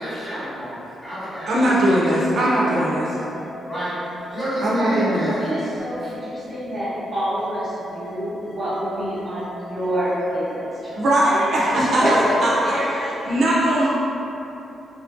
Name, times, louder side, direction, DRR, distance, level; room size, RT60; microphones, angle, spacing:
voice 1, 0.0-3.2 3.7-5.5 6.0-6.1 11.6-12.3 12.8-13.1, equal, 30° left, -13 dB, 1.5 m, -31 dB
voice 2, 1.5-3.1 4.6-5.3 11.0-12.5 13.3-13.9, right 1 dB, 65° right, -6 dB, 0.4 m, -19 dB
sound 1, 2.3-12.3, left 2 dB, 55° left, 0.4 m, -41 dB
voice 3, 5.4-11.0 11.7-12.3 12.6-13.5, right 1 dB, 40° right, -14 dB, 1.0 m, -27 dB
2.8 x 2.4 x 2.4 m, 2.9 s
cardioid pair, 85°, 0 cm